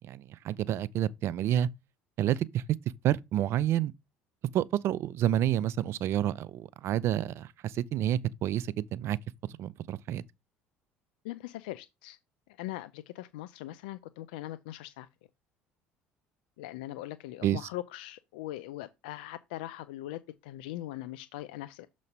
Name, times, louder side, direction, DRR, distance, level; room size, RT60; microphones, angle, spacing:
voice 1, 0.1-1.7 2.2-2.6 3.0-3.9 4.5-9.2 9.6-10.2 17.4-17.6, right 11 dB, 60° right, 0.5 m, -29 dB
voice 2, 11.2-12.2 12.6-15.1 16.6-21.9, left 15 dB, 90° left, 0.5 m, -41 dB
6.7 x 3.1 x 5.4 m
supercardioid pair, 80°, 5 cm